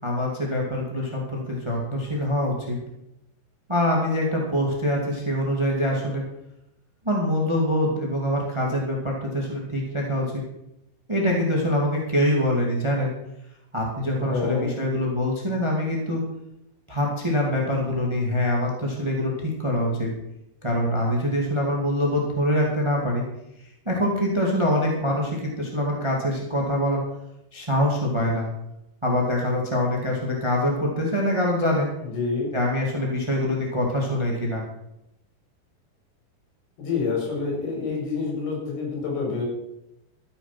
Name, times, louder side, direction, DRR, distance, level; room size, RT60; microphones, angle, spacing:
voice 1, 0.0-2.8 3.7-6.2 7.0-10.4 11.1-13.1 13.7-16.2 16.9-20.1 20.6-23.2 23.8-27.0 27.5-28.5 29.0-31.9 32.5-34.6, left 1 dB, 20° right, -1 dB, 0.7 m, -24 dB
voice 2, 14.1-14.7 32.0-32.5 36.8-39.4, left 4 dB, 65° left, 0 dB, 6.3 m, -27 dB
13.5 x 9.8 x 6.0 m, 0.85 s
omnidirectional pair, 5.1 m